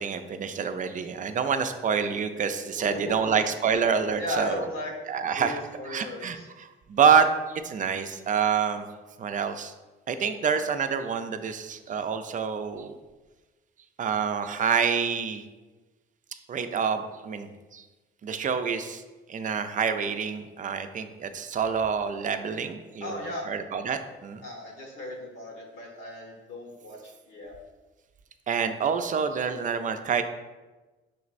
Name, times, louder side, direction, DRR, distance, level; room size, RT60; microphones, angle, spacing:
voice 1, 0.0-4.6 5.1-5.6 5.9-8.8 9.2-9.7 10.1-12.9 14.0-15.4 16.5-17.8 18.2-19.0 19.3-24.4 28.5-30.2, right 6 dB, 40° right, 8 dB, 0.4 m, -27 dB
voice 2, 2.7-3.4 4.2-4.9 5.3-6.5 23.0-23.5 24.4-27.5, left 1 dB, 80° left, 0 dB, 1.2 m, -36 dB
6.0 x 3.0 x 2.5 m, 1.2 s
cardioid pair, 90°, 20 cm